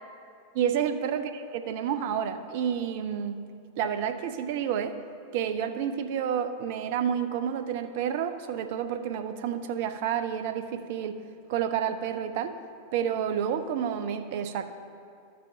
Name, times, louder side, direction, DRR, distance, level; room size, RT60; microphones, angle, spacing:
voice 1, 0.5-3.4 3.8-5.0 5.3-11.2 11.5-12.6 12.9-14.7, right 8 dB, 50° right, 9 dB, 0.5 m, -29 dB
13.0 x 6.3 x 2.7 m, 2.5 s
figure-of-eight pair, 90°, 0 cm